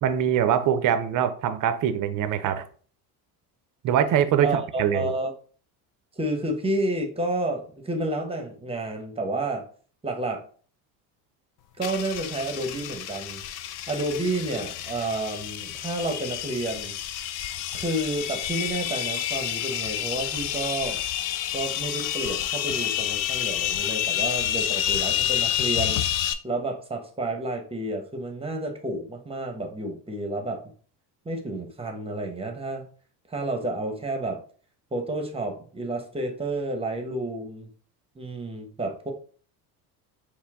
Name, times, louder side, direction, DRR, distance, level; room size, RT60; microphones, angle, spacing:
voice 1, 0.0-2.7 3.8-4.5 4.8-5.1, right 9 dB, 40° right, 10 dB, 0.6 m, -23 dB
voice 2, 4.4-5.3 6.1-9.7 10.0-10.4 11.8-13.4 13.9-16.9 17.7-21.0 21.5-26.0 26.4-30.6 31.2-32.9 33.3-34.4 34.9-37.7 38.1-39.1, right 2 dB, 10° right, 4 dB, 0.9 m, -30 dB
sound 1, 11.8-26.3, left 11 dB, 75° left, 0.6 m, -29 dB
4.4 x 2.2 x 3.5 m, 0.43 s
supercardioid pair, 85°, 48 cm